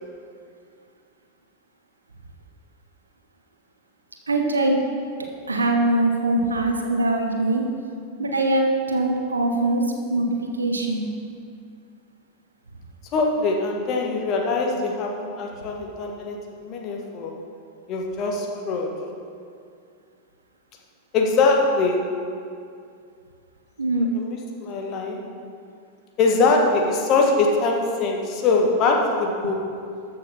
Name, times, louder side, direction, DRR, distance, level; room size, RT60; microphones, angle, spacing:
voice 1, 4.3-4.8 5.2-7.7 8.2-11.1 23.8-24.1, right 2 dB, 75° right, 3 dB, 0.9 m, -22 dB
voice 2, 13.1-16.3 16.6-17.3 17.9-18.9 21.1-22.0 23.9-24.3 24.6-25.2 26.2-29.7, left 3 dB, 35° left, 1 dB, 1.5 m, -22 dB
13.5 x 6.6 x 4.2 m, 2.4 s
figure-of-eight pair, 90°, 0 cm